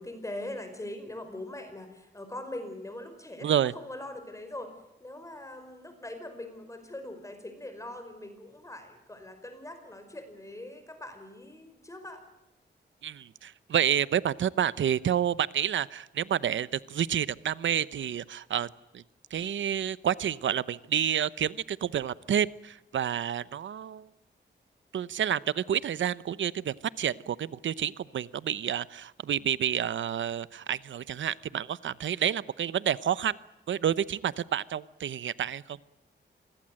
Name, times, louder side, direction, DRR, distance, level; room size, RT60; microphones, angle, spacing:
voice 1, 0.0-4.7 5.0-12.2, left 1 dB, 15° left, 8 dB, 5.1 m, -42 dB
voice 2, 3.4-3.7 13.0-19.0 19.3-24.1 24.9-33.4 33.7-35.8, right 9 dB, 90° right, 18 dB, 0.9 m, -29 dB
27.0 x 21.5 x 7.7 m, 0.94 s
wide cardioid pair, 120°, 19 cm